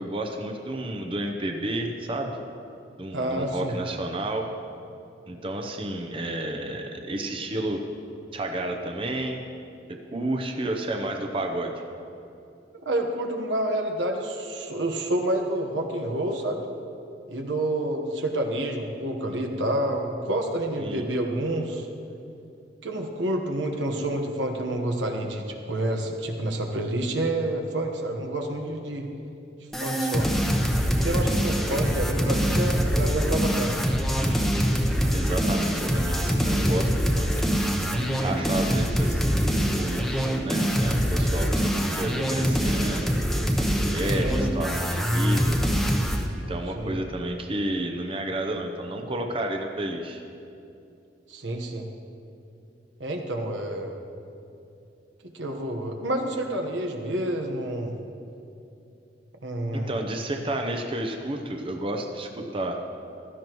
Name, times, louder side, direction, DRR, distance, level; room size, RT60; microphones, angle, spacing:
voice 1, 0.0-2.4 3.0-4.5 5.3-7.8 8.3-9.4 9.9-11.7 20.8-21.0 35.1-37.5 38.2-43.1 43.6-45.6 46.5-50.2 59.7-62.8, right 1 dB, 30° right, 3 dB, 0.7 m, -31 dB
voice 2, 3.1-3.8 12.8-16.6 17.3-21.9 22.8-29.1 29.8-30.3 30.9-33.8 44.1-44.4 46.7-47.0 51.3-51.9 53.0-54.0 55.3-57.9 59.4-60.0, right 1 dB, 85° right, 3 dB, 1.2 m, -28 dB
sound 1, 29.7-46.2, equal, ahead, 0.8 m, -24 dB
16.0 x 13.0 x 3.1 m, 2.7 s
head